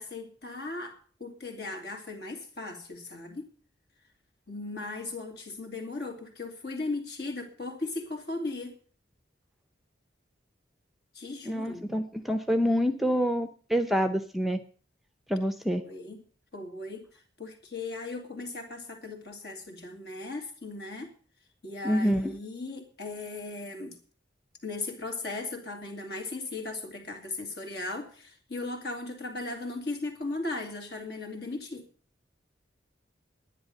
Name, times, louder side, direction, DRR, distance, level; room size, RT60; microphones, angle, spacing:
voice 1, 0.0-3.4 4.5-8.7 11.1-11.9 15.7-16.2 16.5-17.1 17.4-21.1 21.6-24.0 24.6-31.9, left 2 dB, 60° left, 3 dB, 2.6 m, -37 dB
voice 2, 11.4-14.6 15.3-15.8 21.8-22.4, equal, ahead, 8 dB, 0.6 m, -27 dB
11.0 x 10.0 x 6.6 m, 0.43 s
head